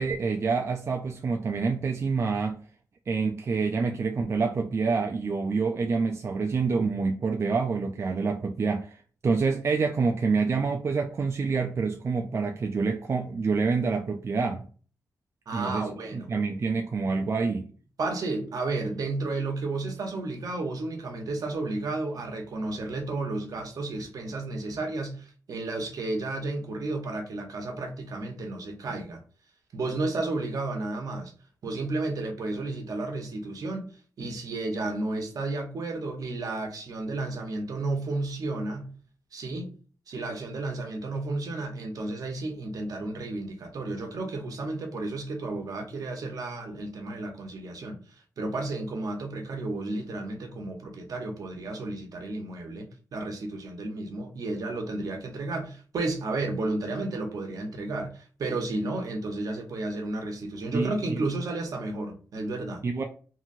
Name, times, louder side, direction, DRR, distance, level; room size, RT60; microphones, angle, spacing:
voice 1, 0.0-2.6 3.1-9.0 9.2-14.7 15.5-17.7 60.7-61.3 62.8-63.0, right 4 dB, 45° right, 0.3 m, -27 dB
voice 2, 15.5-16.3 18.0-29.2 29.7-31.3 31.6-33.9 34.2-38.9 39.3-39.7 40.1-48.0 48.4-62.8, right 2 dB, 70° right, 0.8 m, -32 dB
2.8 x 2.7 x 2.5 m
cardioid pair, 80°, 6 cm